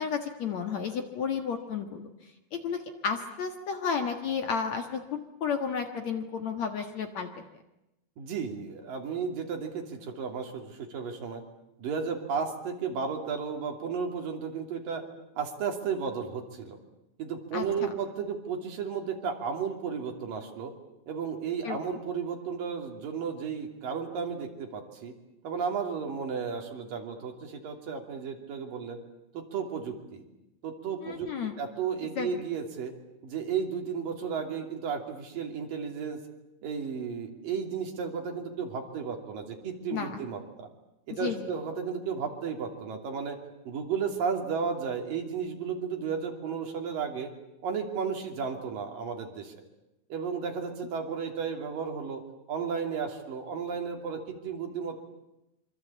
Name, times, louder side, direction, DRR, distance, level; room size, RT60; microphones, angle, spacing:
voice 1, 0.0-2.0 2.5-7.4 17.5-17.9 21.6-21.8 31.0-31.6 32.2-32.3 39.9-40.2 41.2-41.5, left 6 dB, 55° left, 6 dB, 2.5 m, -32 dB
voice 2, 8.2-11.4 11.8-15.0 15.3-16.8 17.2-20.7 21.1-25.1 25.4-29.0 29.3-30.2 30.6-32.9 33.2-36.2 36.6-40.7 41.1-43.4 43.7-47.3 47.6-49.5 50.1-52.2 52.5-55.0, right 6 dB, 65° right, 3 dB, 4.4 m, -33 dB
26.0 x 25.0 x 8.5 m, 0.90 s
omnidirectional pair, 4.4 m